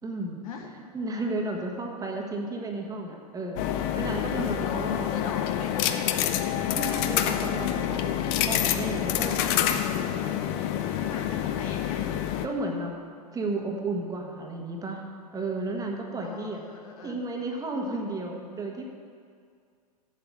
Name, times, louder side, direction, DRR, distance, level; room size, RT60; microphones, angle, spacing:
voice 1, 0.0-0.4 0.9-5.1 6.6-9.8 12.4-12.9 13.3-16.6 17.0-18.8, right 2 dB, 15° right, 1 dB, 1.4 m, -33 dB
sound 1, 3.6-12.5, left 10 dB, 45° left, 0.7 m, -27 dB
voice 2, 4.4-6.3 6.6-7.4 8.4-8.5 9.2-9.7 10.2-10.3 10.9-12.2 16.2-17.2, left 5 dB, 60° left, 2 dB, 1.6 m, -42 dB
8.1 x 7.5 x 8.2 m, 2.3 s
figure-of-eight pair, 95°, 20 cm